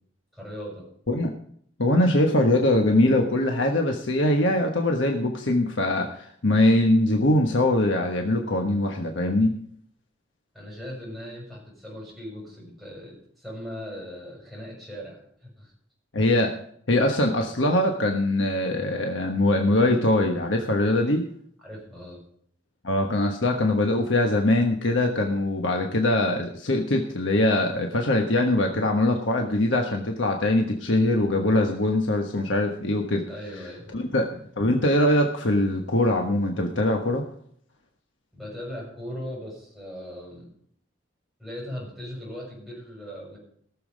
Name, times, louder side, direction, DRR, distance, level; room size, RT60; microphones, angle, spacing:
voice 1, 0.3-0.9 10.5-15.7 21.6-22.2 33.3-33.9 38.3-40.5 41.4-43.4, equal, ahead, -5 dB, 6.5 m, -39 dB
voice 2, 1.8-9.5 16.1-16.5 16.9-21.2 22.8-33.2 33.9-34.2 34.6-37.2, left 1 dB, 85° left, 2 dB, 1.3 m, -22 dB
18.0 x 7.1 x 5.3 m, 0.64 s
head